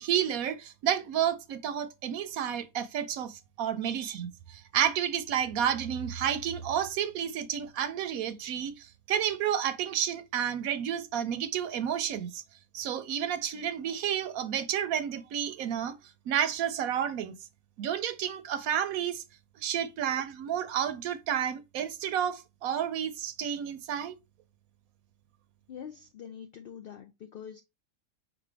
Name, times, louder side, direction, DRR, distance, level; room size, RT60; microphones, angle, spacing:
voice 1, 0.0-12.4 12.7-15.9 16.3-17.3 17.8-19.2 19.6-24.1, right 9 dB, 75° right, 1.0 m, -31 dB
voice 2, 25.7-27.6, left 8 dB, 80° left, 0.5 m, -44 dB
5.2 x 2.7 x 3.3 m
omnidirectional pair, 1.5 m